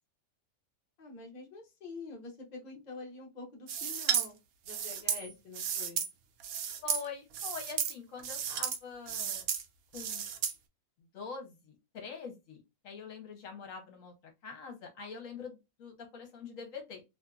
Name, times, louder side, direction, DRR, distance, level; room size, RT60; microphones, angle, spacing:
voice 1, 1.0-4.3 4.6-6.1, left 3 dB, 35° left, 0.8 m, -46 dB
sound 1, 3.7-4.3 4.7-6.1 6.4-7.1 7.3-7.9 8.2-8.8 9.1-9.6 9.9-10.5, right 8 dB, 80° right, 1.0 m, -33 dB
voice 2, 6.8-9.5 9.9-10.3 11.1-14.1 14.4-17.0, left 5 dB, 70° left, 1.2 m, -44 dB
2.8 x 2.6 x 2.2 m
omnidirectional pair, 1.5 m